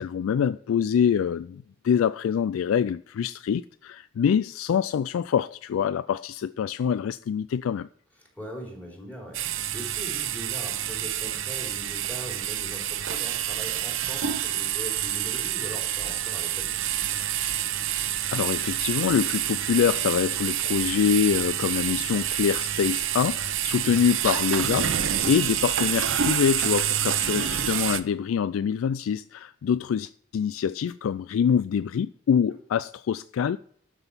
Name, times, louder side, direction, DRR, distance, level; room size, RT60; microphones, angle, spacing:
voice 1, 0.0-7.9 18.3-33.6, left 7 dB, 90° left, 0.3 m, -25 dB
voice 2, 8.2-17.2, equal, 10° left, 3.8 m, -41 dB
sound 1, 9.3-28.0, right 10 dB, 75° right, 0.8 m, -28 dB
12.5 x 6.1 x 5.6 m
head